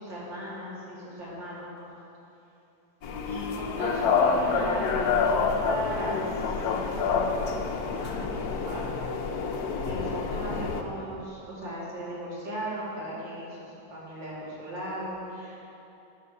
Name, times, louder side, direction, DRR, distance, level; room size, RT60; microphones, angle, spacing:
voice 1, 0.0-1.9 3.3-9.1 9.8-13.6 13.9-15.6, right 1 dB, 75° right, -8 dB, 3.3 m, -37 dB
sound 1, 3.0-10.8, left 5 dB, 65° left, 1.0 m, -28 dB
9.0 x 5.0 x 6.9 m, 2.9 s
omnidirectional pair, 2.1 m